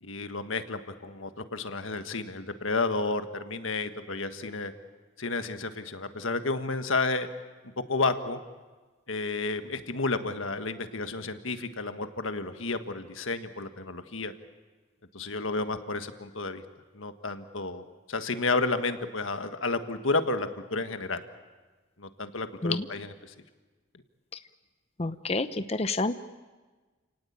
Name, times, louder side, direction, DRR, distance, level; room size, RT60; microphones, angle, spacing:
voice 1, 0.0-4.7 5.2-7.3 7.8-8.4 9.1-14.3 15.1-16.6 16.9-21.2 22.0-23.3, left 3 dB, 85° left, 8 dB, 1.5 m, -31 dB
voice 2, 25.0-26.1, left 3 dB, 30° left, 10 dB, 0.7 m, -28 dB
29.5 x 18.0 x 8.7 m, 1.3 s
head